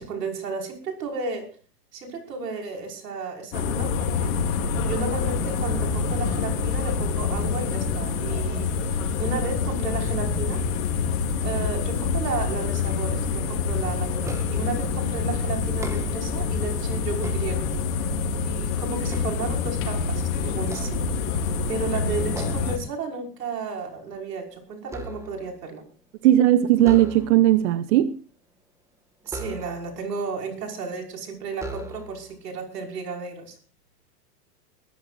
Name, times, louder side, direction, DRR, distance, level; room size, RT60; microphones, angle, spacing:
voice 1, 0.0-1.5 1.9-10.6 11.4-17.7 18.4-21.1 21.7-25.8 29.2-33.6, right 4 dB, 75° right, 2 dB, 5.7 m, -33 dB
sound 1, 3.5-22.8, left 5 dB, 55° left, 4.2 m, -26 dB
sound 2, 14.2-14.8 15.7-16.4 17.0-18.1 18.6-20.1 20.6-21.6 22.3-22.8 23.2-23.5 23.8-25.6 26.8-27.6 29.3-30.0 30.8-30.9 31.5-32.3, right 1 dB, 5° right, 1.8 m, -38 dB
voice 2, 26.2-28.2, right 13 dB, 50° right, 14 dB, 0.8 m, -18 dB
22.0 x 14.5 x 2.6 m, 0.38 s
hypercardioid pair, 125°, 48 cm